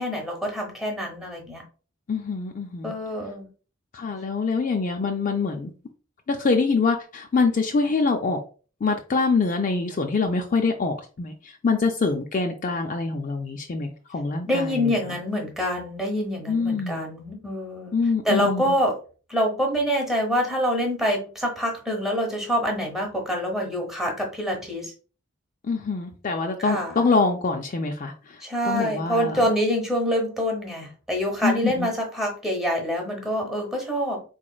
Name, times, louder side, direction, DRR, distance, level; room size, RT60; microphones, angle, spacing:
voice 1, 0.0-1.6 2.8-3.5 14.5-17.9 18.2-18.9 19.3-24.9 26.6-27.0 28.4-34.2, equal, ahead, 1 dB, 0.9 m, -26 dB
voice 2, 2.1-2.9 3.9-5.7 6.3-8.4 8.8-15.0 16.5-17.0 17.9-18.7 25.6-29.5 31.4-31.9, left 4 dB, 40° left, 3 dB, 0.4 m, -25 dB
4.1 x 3.0 x 2.3 m, 0.37 s
head